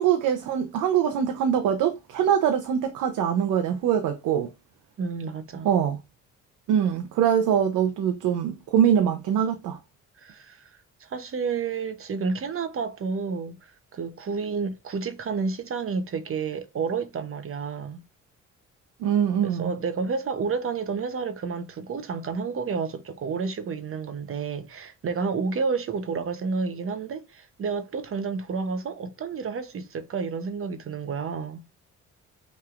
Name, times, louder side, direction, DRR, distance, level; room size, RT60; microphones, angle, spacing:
voice 1, 0.0-4.5 5.6-6.0 6.7-9.8 19.0-19.7, right 9 dB, 85° right, 0.8 m, -23 dB
voice 2, 5.0-5.7 10.2-10.7 11.0-18.0 19.4-31.6, right 5 dB, 45° right, 0.8 m, -30 dB
5.6 x 3.3 x 2.5 m
cardioid pair, 90°, 30 cm